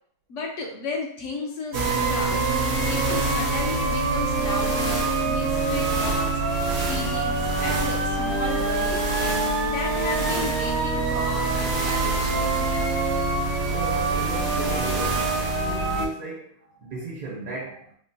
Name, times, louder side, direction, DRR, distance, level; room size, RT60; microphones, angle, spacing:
voice 1, 0.3-2.5 2.9-6.4 6.9-12.5, left 3 dB, 65° left, 0 dB, 0.8 m, -34 dB
sound 1, 1.7-16.1, right 3 dB, 60° right, 0.8 m, -24 dB
voice 2, 13.7-15.3 15.6-17.9, right 3 dB, 75° right, -4 dB, 1.3 m, -35 dB
3.6 x 2.1 x 2.6 m, 0.64 s
omnidirectional pair, 1.6 m